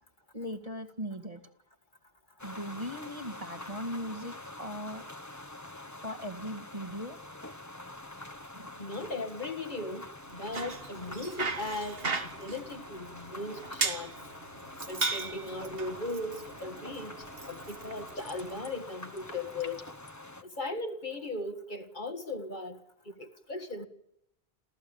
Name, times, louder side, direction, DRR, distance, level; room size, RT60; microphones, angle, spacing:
voice 1, 0.3-1.4 2.4-5.0 6.0-7.2 8.5-8.7, equal, 35° right, 2.3 m, -39 dB
sound 1, 2.4-20.4, left 2 dB, 15° left, 1.4 m, -46 dB
voice 2, 8.8-10.1 10.3-12.0 12.4-14.1 14.9-17.1 17.5-19.8 20.4-22.8 23.1-23.9, left 2 dB, 50° left, 2.0 m, -37 dB
Bicycle, 10.3-18.6, right 3 dB, 65° right, 2.0 m, -37 dB
sound 2, 18.1-18.8 19.1-20.1, left 3 dB, 75° left, 2.2 m, -50 dB
29.0 x 14.5 x 8.9 m
omnidirectional pair, 1.0 m